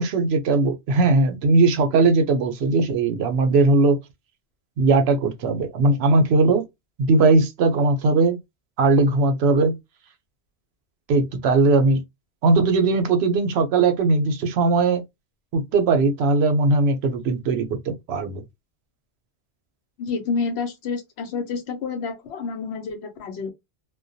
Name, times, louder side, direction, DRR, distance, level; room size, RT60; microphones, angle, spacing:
voice 1, 0.0-4.0 4.8-6.6 7.0-8.4 8.8-9.8 11.1-12.0 12.4-15.0 15.5-18.4, right 3 dB, 80° right, 0.8 m, -19 dB
voice 2, 20.0-23.5, left 4 dB, 85° left, 0.9 m, -29 dB
2.2 x 2.1 x 2.6 m
omnidirectional pair, 1.1 m